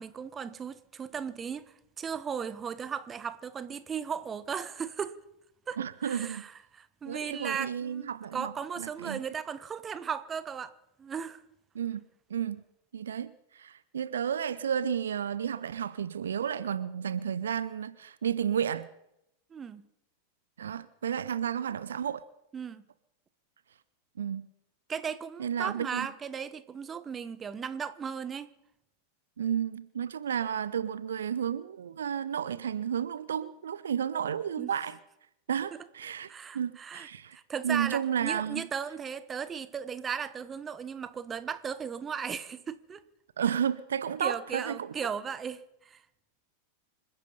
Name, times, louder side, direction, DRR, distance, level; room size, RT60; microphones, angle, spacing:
voice 1, 0.0-5.2 5.7-10.7 11.0-11.4 19.5-19.9 22.5-22.8 24.9-28.5 34.6-34.7 36.3-37.1 37.3-43.0 44.2-46.0, right 7 dB, 20° right, 1.0 m, -36 dB
voice 2, 5.8-6.4 7.0-8.5 8.8-9.2 11.7-12.0 12.3-12.6 12.9-18.9 20.6-22.2 24.2-24.5 25.4-26.1 29.4-35.0 35.5-37.4 37.6-38.7 43.4-44.9, right 8 dB, 65° right, 0.6 m, -32 dB
26.5 x 10.0 x 5.4 m
figure-of-eight pair, 90°, 0 cm